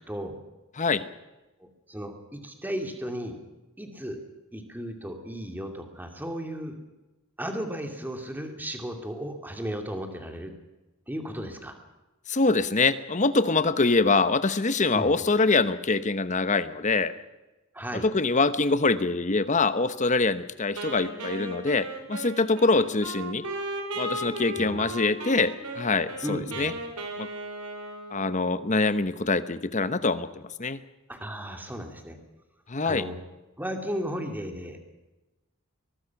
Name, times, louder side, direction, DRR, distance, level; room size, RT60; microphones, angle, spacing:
voice 1, 1.6-3.4 3.8-4.2 4.5-6.8 7.4-10.5 11.1-11.8 14.9-15.1 17.7-18.1 24.6-24.8 26.2-26.8 31.1-32.2 32.8-33.2 33.6-34.9, equal, 10° right, 4 dB, 2.6 m, -35 dB
voice 2, 12.3-17.1 18.0-23.4 24.0-26.7 27.2-27.3 28.1-30.3 30.6-30.8 32.7-33.0, left 3 dB, 35° left, 13 dB, 1.0 m, -24 dB
Wind instrument woodwind instrument, 20.8-28.7, right 1 dB, 90° right, 4.3 m, -36 dB
23.0 x 21.5 x 6.0 m, 1.1 s
head